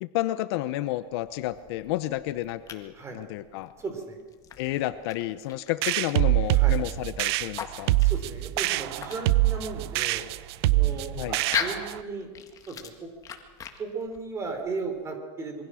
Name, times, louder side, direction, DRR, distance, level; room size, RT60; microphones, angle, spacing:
voice 1, 0.0-3.7 4.6-7.9 11.1-11.4, left 15 dB, 55° left, 13 dB, 0.9 m, -31 dB
sound 1, 0.9-15.0, left 7 dB, 20° left, 1.8 m, -41 dB
voice 2, 3.8-4.2 6.5-6.8 8.0-10.2 10.7-12.3 12.7-13.1 13.8-15.7, right 4 dB, 15° right, 5 dB, 3.8 m, -36 dB
sound 2, 5.8-12.0, right 17 dB, 55° right, 0.8 m, -25 dB
26.0 x 23.5 x 6.4 m, 1.4 s
supercardioid pair, 165°, 16 cm